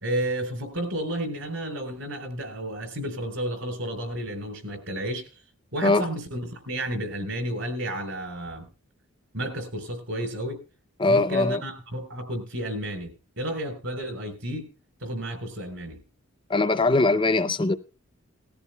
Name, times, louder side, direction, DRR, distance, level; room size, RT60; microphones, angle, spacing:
voice 1, 0.0-5.3 5.7-8.6 9.3-10.6 11.1-14.7 15.0-16.0, right 1 dB, 65° right, 4.0 m, -32 dB
voice 2, 11.0-11.6 16.5-17.8, left 2 dB, 20° left, 0.5 m, -21 dB
19.0 x 14.0 x 2.2 m
head